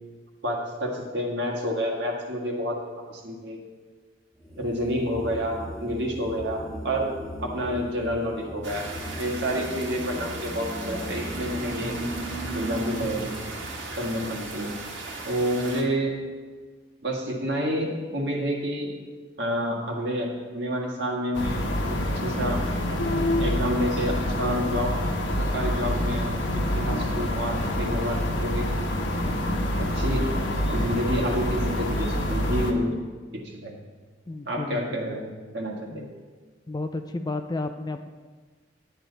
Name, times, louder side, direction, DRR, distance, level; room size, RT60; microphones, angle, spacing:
voice 1, 0.4-2.8 3.1-3.6 4.6-7.1 7.4-8.8 9.2-11.9 12.5-13.3 14.0-14.7 15.2-16.1 17.0-18.9 19.4-22.6 23.4-24.9 25.4-28.7 29.8-30.4 30.7-33.0 33.3-33.7 34.4-36.0, equal, 65° right, -1 dB, 1.8 m, -29 dB
sound 1, 4.4-15.7, equal, ahead, 1.5 m, -39 dB
sound 2, 8.6-15.8, right 2 dB, 85° right, 1.5 m, -35 dB
sound 3, 21.3-32.7, left 1 dB, 85° left, 1.2 m, -26 dB
voice 2, 34.3-35.2 35.9-36.1 36.7-38.1, left 2 dB, 20° left, 7 dB, 0.4 m, -32 dB
10.5 x 8.9 x 4.0 m, 1.5 s
head